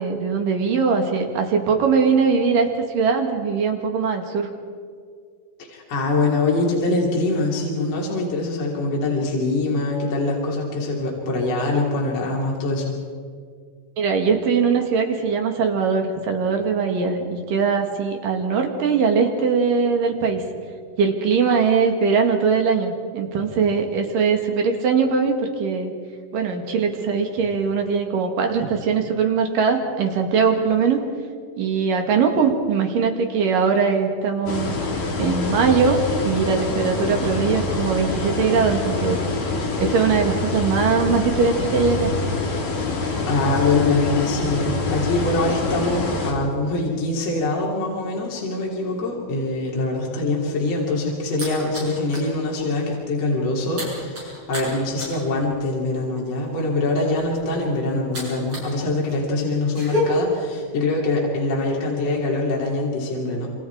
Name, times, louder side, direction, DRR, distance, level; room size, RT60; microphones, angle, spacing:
voice 1, 0.0-4.5 14.0-20.4 21.0-25.9 26.3-31.0 31.6-34.8 35.2-39.2 39.8-42.1, right 5 dB, 65° right, 4 dB, 3.5 m, -21 dB
voice 2, 5.7-12.9 43.3-63.5, left 2 dB, 45° left, -3 dB, 4.0 m, -23 dB
sound 1, 34.5-46.3, left 3 dB, 60° left, 5.1 m, -25 dB
sound 2, 50.5-52.3 52.7-52.9 53.2-58.7 59.0-60.0, equal, 30° right, 8.5 m, -33 dB
27.0 x 26.5 x 4.7 m, 2.1 s
omnidirectional pair, 4.3 m